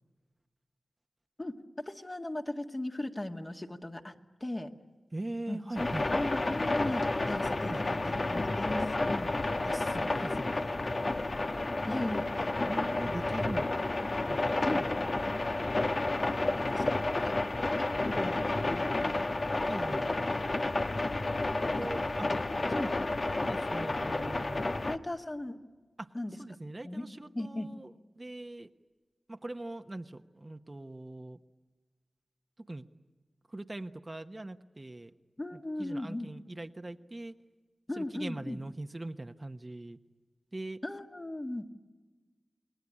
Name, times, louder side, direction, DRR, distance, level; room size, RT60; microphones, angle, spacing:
voice 1, 1.4-4.1 4.4-4.7 5.5-9.3 11.9-12.5 13.2-13.7 14.7-14.9 16.3-17.3 17.8-17.9 18.1-19.2 22.7-23.0 24.5-25.6 26.1-26.4 26.8-27.1 27.3-27.7 35.4-36.3 37.9-38.6 40.8-41.7, left 1 dB, 30° left, 3 dB, 1.9 m, -37 dB
voice 2, 5.1-6.0 7.7-7.8 9.5-10.6 12.6-13.8 14.3-14.4 19.7-20.1 21.5-22.0 22.6-22.9 23.3-24.6 26.0-26.1 26.4-28.7 29.3-31.4 32.7-32.9 33.5-35.1 35.8-37.3 38.0-40.0 40.5-40.8, right 2 dB, 35° right, 7 dB, 1.0 m, -41 dB
sound 1, 5.8-25.0, left 2 dB, 55° left, 1.2 m, -31 dB
29.0 x 20.5 x 9.9 m, 1.3 s
cardioid pair, 45°, 0 cm